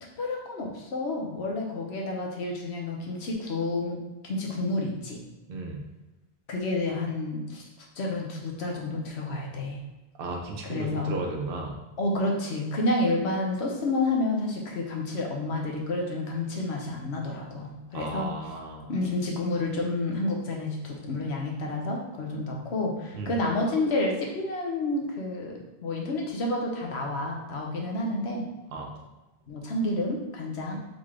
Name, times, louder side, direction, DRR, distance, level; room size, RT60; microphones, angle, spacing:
voice 1, 0.2-5.2 6.5-7.6 8.0-9.8 10.6-11.1 12.0-18.3 18.9-28.4 29.5-30.8, left 2 dB, 80° left, 0 dB, 1.1 m, -30 dB
voice 2, 5.5-5.8 10.2-11.8 17.9-18.9 23.1-23.3 28.7-28.9, right 2 dB, 65° right, 0 dB, 0.9 m, -35 dB
3.8 x 3.6 x 3.2 m, 1.1 s
omnidirectional pair, 1.1 m